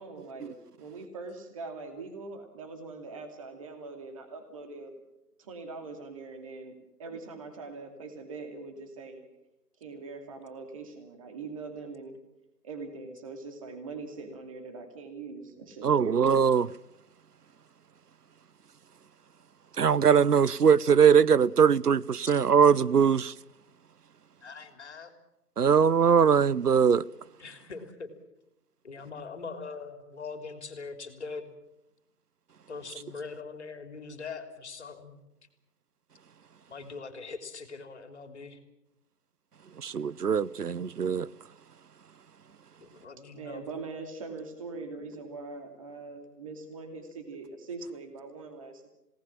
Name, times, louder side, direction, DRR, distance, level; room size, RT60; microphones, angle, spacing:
voice 1, 0.0-5.0 5.4-9.2 9.8-12.2 12.6-16.2 43.3-48.9, right 3 dB, 20° right, 2.6 m, -42 dB
voice 2, 15.8-16.7 19.8-23.3 25.6-27.0 39.8-41.3, right 7 dB, 70° right, 0.8 m, -21 dB
voice 3, 24.4-25.1 27.4-28.1 28.8-31.5 32.7-35.2 36.7-38.6 42.8-43.6, left 4 dB, 45° left, 3.4 m, -42 dB
28.0 x 18.5 x 7.4 m
figure-of-eight pair, 160°, 48 cm